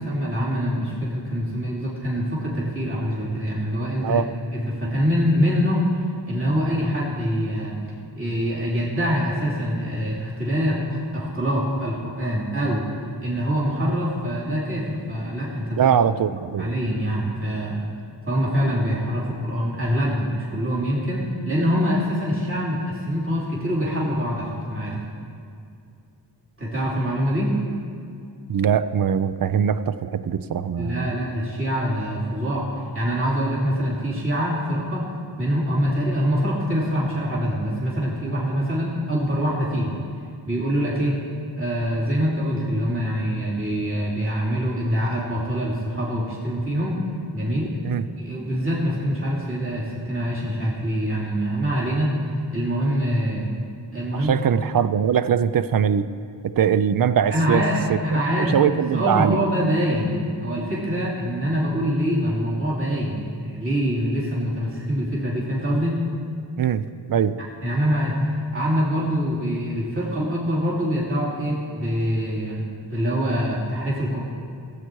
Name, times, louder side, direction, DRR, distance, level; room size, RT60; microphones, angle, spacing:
voice 1, 0.0-4.2 4.5-5.9 6.3-7.8 8.1-12.8 13.2-15.9 16.6-17.8 18.3-25.0 26.6-27.5 30.8-35.1 35.4-40.0 40.4-41.2 41.6-47.0 47.3-47.8 48.2-52.1 52.5-53.5 53.9-54.3 57.3-58.6 58.9-66.0 67.6-68.2 68.5-72.6 72.9-74.2, equal, 30° right, -6 dB, 2.8 m, -24 dB
voice 2, 15.8-16.7 28.5-31.1 47.8-48.1 54.2-56.1 56.4-59.4 66.6-67.3, right 8 dB, 50° right, 14 dB, 0.5 m, -22 dB
15.5 x 8.3 x 4.6 m, 2.4 s
wide cardioid pair, 80°, 45 cm